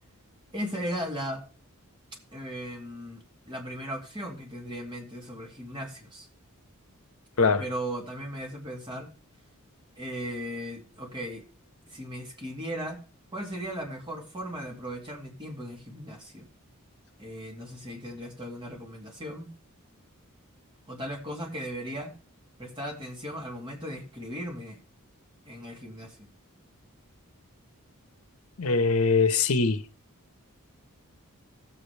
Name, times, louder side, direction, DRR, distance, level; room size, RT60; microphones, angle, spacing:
voice 1, 0.5-1.4 2.3-3.2 3.5-6.3 7.6-9.1 10.0-11.4 11.9-13.0 13.3-16.5 17.2-19.5 20.9-22.1 22.6-24.8 25.5-26.3, equal, 20° right, 2.4 m, -37 dB
voice 2, 28.6-29.8, left 4 dB, 70° left, 0.9 m, -22 dB
16.5 x 7.6 x 3.3 m
head